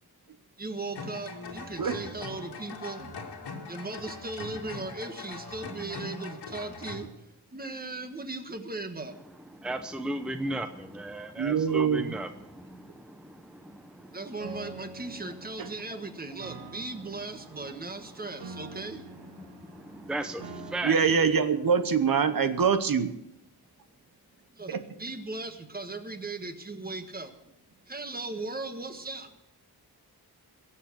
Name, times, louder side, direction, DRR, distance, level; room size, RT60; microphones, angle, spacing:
voice 1, 0.6-3.2 3.7-9.2 14.1-19.1 24.5-27.5 27.9-29.4, right 3 dB, 25° right, 7 dB, 1.4 m, -38 dB
sound 1, 0.9-7.0, left 3 dB, 90° left, 2.5 m, -41 dB
voice 2, 9.5-14.3 17.6-17.7 18.1-18.2 19.2-21.0, right 1 dB, ahead, 8 dB, 0.7 m, -36 dB
voice 3, 11.4-12.2 15.6-15.7 20.8-23.1 24.7-24.8, right 6 dB, 60° right, 10 dB, 1.0 m, -24 dB
Piano, 14.4-22.4, right 3 dB, 80° right, 2.1 m, -47 dB
22.0 x 7.4 x 6.1 m, 0.80 s
wide cardioid pair, 145°, 39 cm